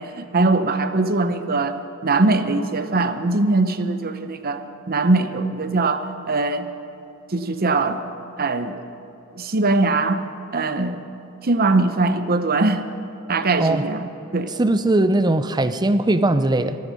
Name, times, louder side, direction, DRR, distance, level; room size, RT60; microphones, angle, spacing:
voice 1, 0.0-6.7 7.3-8.0 8.4-8.8 9.3-10.2 10.5-11.0 11.4-12.9 13.3-14.1 14.3-14.5, right 3 dB, 45° right, 10 dB, 0.8 m, -21 dB
voice 2, 14.6-16.8, right 2 dB, 20° right, 11 dB, 0.5 m, -19 dB
25.0 x 9.7 x 5.3 m, 2.9 s
head